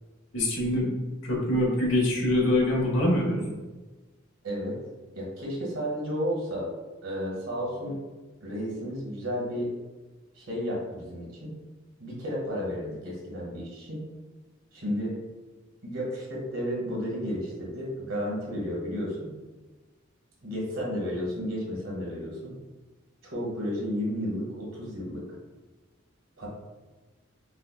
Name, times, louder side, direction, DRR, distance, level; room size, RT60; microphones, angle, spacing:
voice 1, 0.3-0.9 1.2-3.4, left 1 dB, 75° left, -3 dB, 1.2 m, -24 dB
voice 2, 4.4-4.8 5.1-6.7 7.0-8.0 8.4-9.7 10.3-11.5 12.0-14.0 14.7-15.1 15.8-19.3 20.4-22.5 23.3-25.2 26.4-26.5, equal, 85° right, -5 dB, 1.4 m, -32 dB
5.0 x 2.2 x 2.3 m, 1.2 s
head